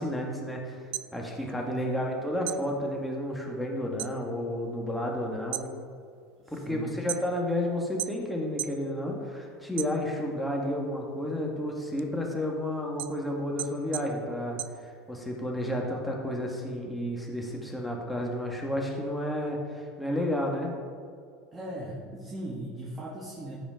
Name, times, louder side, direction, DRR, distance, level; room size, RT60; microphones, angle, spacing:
voice 1, 0.0-5.7 6.5-20.7, left 1 dB, 5° left, -1 dB, 2.0 m, -31 dB
sound 1, 0.7-2.1 2.4-4.2 4.5-5.0 5.4-7.6 8.0-8.8 9.2-10.4 10.9-15.4, right 16 dB, 70° right, 0.3 m, -38 dB
voice 2, 1.6-2.1 6.4-7.0 21.5-23.6, right 1 dB, 20° right, -5 dB, 1.9 m, -39 dB
14.0 x 5.1 x 3.9 m, 2.2 s
hypercardioid pair, 95°, 0 cm